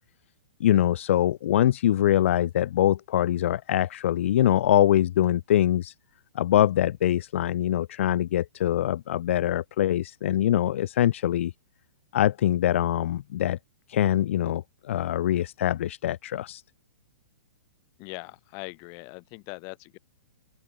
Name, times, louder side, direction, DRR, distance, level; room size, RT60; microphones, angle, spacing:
voice 1, 0.6-5.9 6.3-11.5 12.1-13.6 13.9-16.6, left 12 dB, 55° left, 0.4 m, -23 dB
voice 2, 18.0-20.0, left 37 dB, 35° left, 1.5 m, -41 dB
open air
figure-of-eight pair, 115°, 8 cm